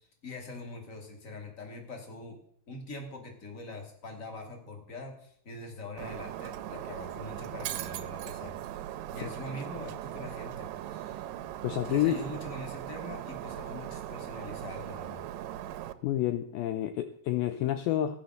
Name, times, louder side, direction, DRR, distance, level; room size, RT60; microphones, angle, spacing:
voice 1, 0.0-2.4 2.7-8.5 9.1-11.2 11.8-15.2, left 2 dB, 25° left, 3 dB, 2.4 m, -43 dB
Shatter, 6.0-15.9, right 12 dB, 75° right, 2.0 m, -39 dB
voice 2, 11.6-12.2 16.0-18.2, left 12 dB, 80° left, 9 dB, 2.3 m, -29 dB
15.5 x 9.9 x 6.5 m, 0.65 s
omnidirectional pair, 4.7 m